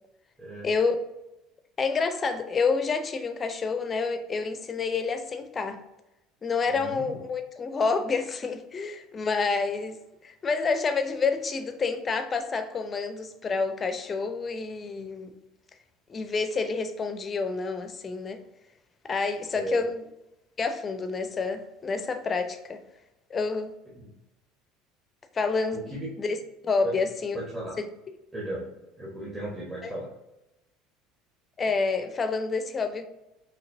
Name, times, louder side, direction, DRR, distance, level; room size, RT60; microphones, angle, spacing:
voice 1, 0.6-1.0 1.8-5.8 6.4-10.0 10.2-15.3 16.1-18.4 19.0-20.0 20.6-22.8 23.3-23.7 25.3-25.9 26.2-26.4 26.6-27.4 27.8-27.9 29.8-29.9 31.6-33.0, left 4 dB, 30° left, 8 dB, 0.6 m, -28 dB
voice 2, 6.7-7.2 19.5-19.9 23.9-24.2 25.7-26.2 26.8-26.9 27.3-27.8 28.3-28.7 29.0-30.1, right 1 dB, 15° right, -5 dB, 1.2 m, -35 dB
5.7 x 2.9 x 2.7 m, 0.93 s
figure-of-eight pair, 65°, 0 cm